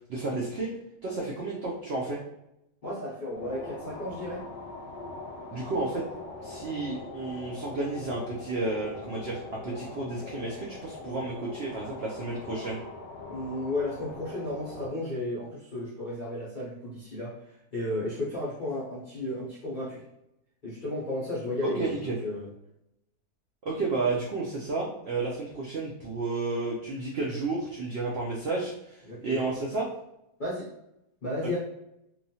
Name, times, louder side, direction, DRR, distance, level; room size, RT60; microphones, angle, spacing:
voice 1, 0.1-0.7 1.0-2.2 5.5-6.0 6.4-12.8 21.6-22.2 23.6-29.9, right 3 dB, 75° right, -4 dB, 0.5 m, -32 dB
voice 2, 2.8-4.4 13.3-20.0 20.6-21.9 22.2-22.5 29.1-29.5 30.4-30.7 31.2-31.6, left 1 dB, 55° left, -7 dB, 0.5 m, -33 dB
sound 1, 3.3-14.9, left 3 dB, 85° left, 1.1 m, -42 dB
2.9 x 2.3 x 2.7 m, 0.84 s
omnidirectional pair, 1.6 m